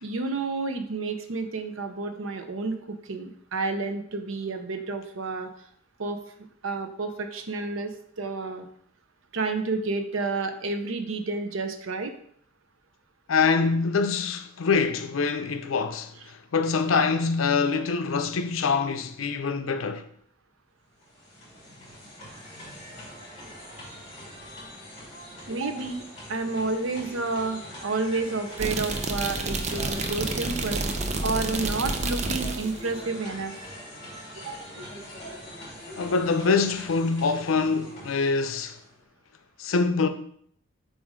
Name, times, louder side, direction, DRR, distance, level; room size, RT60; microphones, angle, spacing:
voice 1, 0.0-5.5 6.0-6.2 6.6-8.7 9.3-12.1 25.5-30.8 31.2-33.5 34.4-34.6, right 3 dB, 80° right, 0.7 m, -30 dB
voice 2, 13.3-20.1 36.0-38.8 39.6-40.1, left 4 dB, 80° left, 0.5 m, -25 dB
sound 1, 20.9-38.9, equal, 35° left, 2.7 m, -43 dB
sound 2, 28.6-32.8, right 3 dB, 35° right, 0.6 m, -29 dB
7.2 x 2.6 x 5.0 m
head